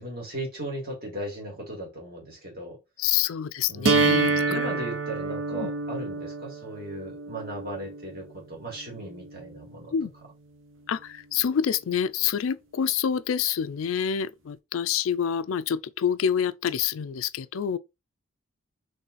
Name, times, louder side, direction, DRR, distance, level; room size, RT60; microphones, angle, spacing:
voice 1, 0.0-2.8 3.7-9.9, right 1 dB, 45° right, 2.2 m, -37 dB
voice 2, 3.0-4.7 5.5-5.7 9.9-10.1 10.9-17.8, left 8 dB, 75° left, 0.4 m, -27 dB
sound 1, 3.8-9.8, right 3 dB, 65° right, 0.8 m, -28 dB
4.0 x 3.3 x 3.9 m
head